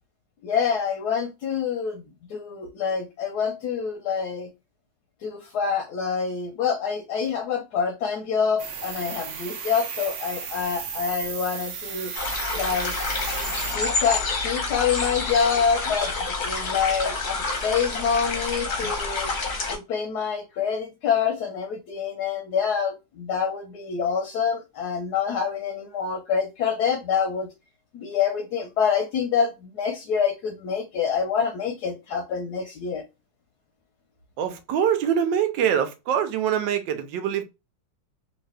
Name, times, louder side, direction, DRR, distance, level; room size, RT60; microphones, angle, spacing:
voice 1, 0.4-2.0 2.3-4.5 5.2-12.1 12.6-12.9 13.7-19.3 19.7-27.5 27.9-33.0, left 6 dB, 70° left, 1.0 m, -26 dB
sound 1, 8.6-13.8, right 6 dB, 65° right, 0.7 m, -34 dB
sound 2, 12.1-19.8, left 3 dB, 40° left, 0.7 m, -28 dB
voice 2, 34.4-37.4, right 9 dB, 85° right, 1.3 m, -24 dB
2.9 x 2.7 x 3.2 m
omnidirectional pair, 2.0 m